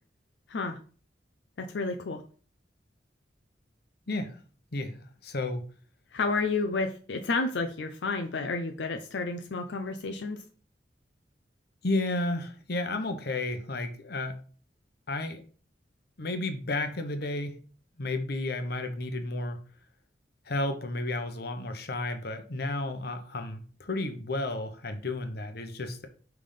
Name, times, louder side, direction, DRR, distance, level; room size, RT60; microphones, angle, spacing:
voice 1, 1.6-2.2 6.1-10.4, left 3 dB, 90° left, 5 dB, 0.6 m, -31 dB
voice 2, 4.1-4.4 4.7-5.6 11.8-14.4 15.1-15.4 16.2-17.6 18.0-19.6 20.5-26.1, left 2 dB, 65° left, 7 dB, 1.0 m, -32 dB
5.6 x 3.5 x 5.1 m, 0.41 s
head